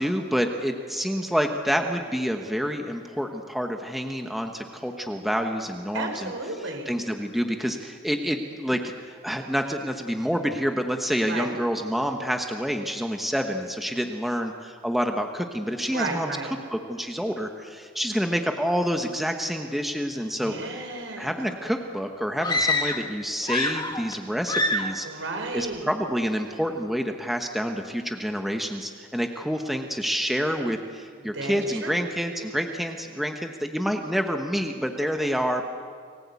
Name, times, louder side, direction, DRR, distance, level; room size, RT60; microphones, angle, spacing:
voice 1, 0.0-6.3 6.6-16.3 16.7-20.7 21.2-25.1 25.5-35.7, equal, ahead, 4 dB, 1.2 m, -28 dB
voice 2, 5.9-6.9 11.3-11.5 15.9-16.5 20.4-21.3 25.0-25.9 31.3-32.0, right 2 dB, 70° right, 3 dB, 5.1 m, -33 dB
sound 1, 22.4-23.1 23.4-24.2 24.5-25.0, left 2 dB, 20° left, 1.6 m, -26 dB
29.5 x 19.5 x 8.4 m, 2.1 s
head